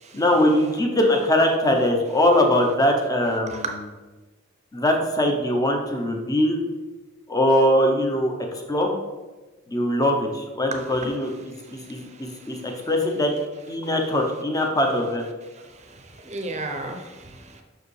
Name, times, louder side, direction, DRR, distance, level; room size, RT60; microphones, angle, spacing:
voice 1, 0.1-3.6 4.7-6.6 7.3-8.9 9.7-11.3 11.9-13.3 13.7-15.3, left 1 dB, 20° left, 2 dB, 0.7 m, -21 dB
voice 2, 3.5-3.8 10.7-11.1 11.5-12.9 15.6-17.6, right 2 dB, 35° right, 4 dB, 0.7 m, -36 dB
6.2 x 4.7 x 3.3 m, 1.2 s
head